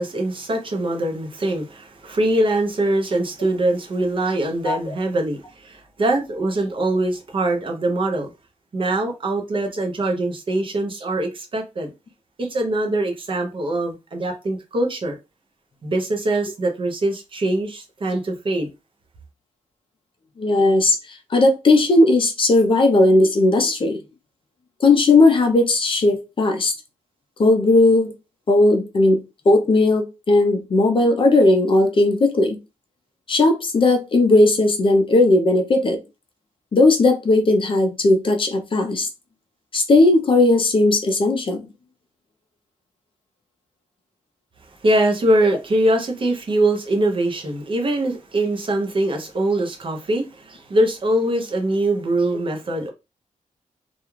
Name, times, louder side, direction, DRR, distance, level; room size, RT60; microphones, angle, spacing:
voice 1, 0.0-8.3 8.7-11.9 12.4-15.2 15.8-18.7 44.8-52.9, right 1 dB, 40° right, 0.6 m, -22 dB
voice 2, 20.4-21.0 21.3-24.0 24.8-26.7 27.4-28.1 28.5-32.6 33.3-36.0 36.7-39.1 39.7-41.6 52.7-52.8, left 2 dB, 40° left, 0.5 m, -17 dB
2.3 x 2.2 x 3.0 m
wide cardioid pair, 170°, 14 cm